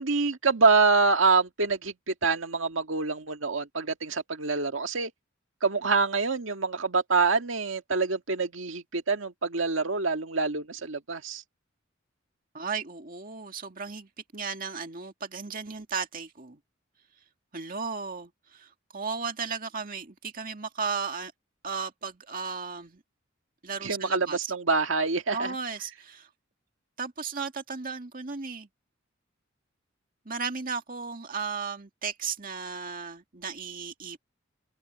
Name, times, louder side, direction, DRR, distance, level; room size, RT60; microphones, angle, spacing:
voice 1, 0.0-5.1 5.6-11.4 23.8-25.5, right 4 dB, 80° right, 1.8 m, -26 dB
voice 2, 12.5-16.6 17.5-21.3 21.6-23.0 23.6-24.5 25.3-26.3 27.0-28.7 30.3-34.2, right 5 dB, 45° right, 2.1 m, -35 dB
open air
head